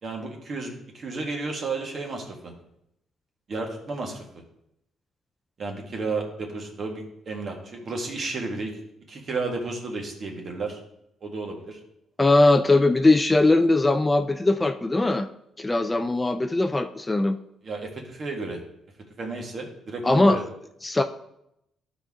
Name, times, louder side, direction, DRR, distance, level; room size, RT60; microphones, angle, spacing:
voice 1, 0.0-2.5 3.5-4.2 5.6-8.7 9.1-10.8 11.2-11.8 17.6-18.6 19.2-20.4, right 3 dB, 50° right, 1 dB, 1.8 m, -32 dB
voice 2, 12.2-15.3 15.6-17.4 20.0-20.4 20.8-21.0, left 2 dB, 15° left, 8 dB, 0.4 m, -20 dB
12.5 x 4.3 x 3.7 m, 0.79 s
cardioid pair, 90°, 0 cm